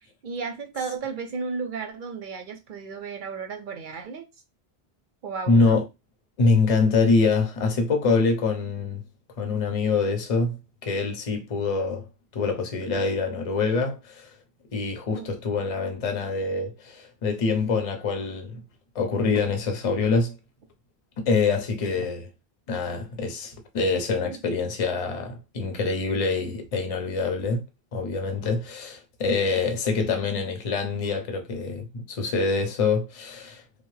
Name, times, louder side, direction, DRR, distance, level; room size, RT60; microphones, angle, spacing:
voice 1, 0.2-4.2 5.2-5.8 15.1-15.3 22.0-22.1 24.2-24.4, right 5 dB, 60° right, 0.6 m, -34 dB
voice 2, 5.5-5.8 6.4-9.0 9.4-12.1 12.3-14.3 14.7-18.6 18.9-20.4 21.2-22.3 22.7-27.6 27.9-33.6, left 4 dB, 40° left, 0.6 m, -25 dB
2.7 x 2.0 x 3.1 m
omnidirectional pair, 1.1 m